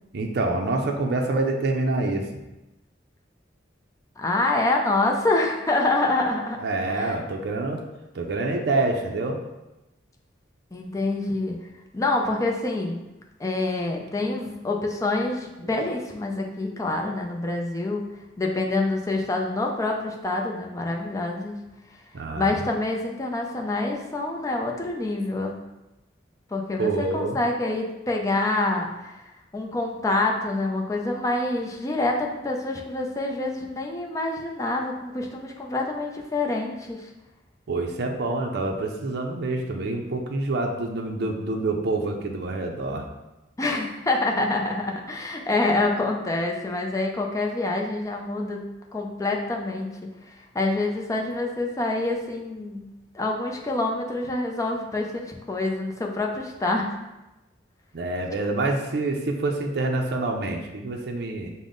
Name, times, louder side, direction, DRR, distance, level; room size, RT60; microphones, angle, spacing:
voice 1, 0.1-2.4 6.6-7.9 8.1-9.4 16.7-16.8 22.1-22.6 26.8-27.4 37.7-43.1 57.9-61.5, right 2 dB, 60° right, 2 dB, 0.5 m, -26 dB
voice 2, 4.2-6.6 6.9-7.1 10.7-11.6 11.9-13.0 13.4-18.0 18.4-21.6 22.3-25.5 26.5-37.1 43.6-48.6 48.9-49.9 50.2-52.8 53.1-56.9, left 2 dB, 20° left, 0 dB, 0.5 m, -26 dB
5.2 x 2.1 x 3.8 m, 0.99 s
head